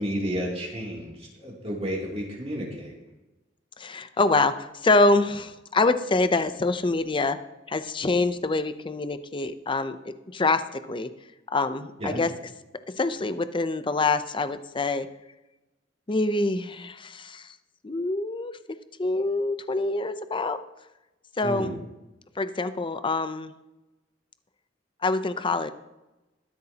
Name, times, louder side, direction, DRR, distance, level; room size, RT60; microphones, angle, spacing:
voice 1, 0.0-2.9 12.0-12.2 21.4-21.7, equal, 35° right, -3 dB, 2.9 m, -31 dB
voice 2, 3.8-7.4 7.7-10.6 10.9-11.1 11.5-12.3 13.0-15.1 16.1-17.5 17.8-18.5 19.0-20.6 21.4-21.8 22.4-23.5 25.0-25.7, left 3 dB, 25° left, 11 dB, 0.6 m, -25 dB
23.0 x 8.1 x 2.9 m, 1.0 s
head